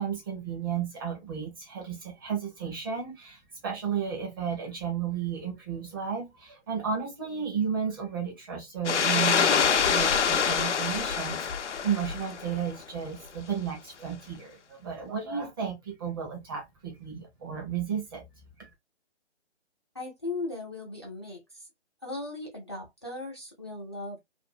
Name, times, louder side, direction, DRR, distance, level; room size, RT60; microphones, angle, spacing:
voice 1, 0.0-18.2 18.6-18.7, right 7 dB, 20° right, 0.7 m, -33 dB
sound 1, 8.8-12.6, left 7 dB, 85° left, 0.6 m, -25 dB
voice 2, 19.9-21.7 22.0-24.2, left 2 dB, 25° left, 0.4 m, -37 dB
2.6 x 2.4 x 2.5 m
hypercardioid pair, 155°, 34 cm